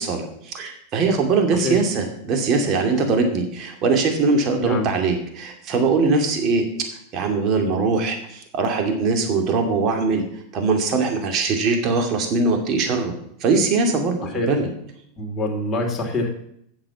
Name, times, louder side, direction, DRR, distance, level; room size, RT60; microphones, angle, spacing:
voice 1, 0.0-6.6 7.1-13.1 13.4-14.7, right 4 dB, 40° right, 4 dB, 2.4 m, -21 dB
voice 2, 15.2-16.3, left 1 dB, 20° left, 0 dB, 2.8 m, -25 dB
8.0 x 7.4 x 7.2 m, 0.70 s
supercardioid pair, 125°, 0 cm